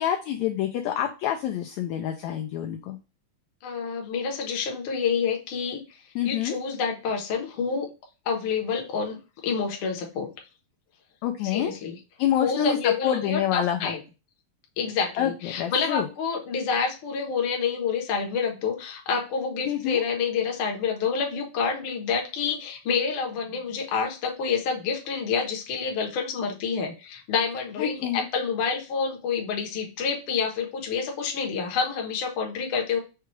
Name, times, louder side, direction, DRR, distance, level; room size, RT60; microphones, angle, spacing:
voice 1, 0.0-3.0 6.2-6.6 11.2-11.7 12.2-14.0 15.2-16.1 19.7-20.0 27.8-28.3, left 10 dB, 80° left, 4 dB, 1.7 m, -27 dB
voice 2, 3.6-6.0 6.2-7.9 8.2-9.2 9.4-10.3 11.4-12.0 12.4-14.0 14.8-33.0, left 5 dB, 65° left, 2 dB, 1.5 m, -28 dB
5.7 x 2.3 x 3.1 m, 0.30 s
omnidirectional pair, 3.6 m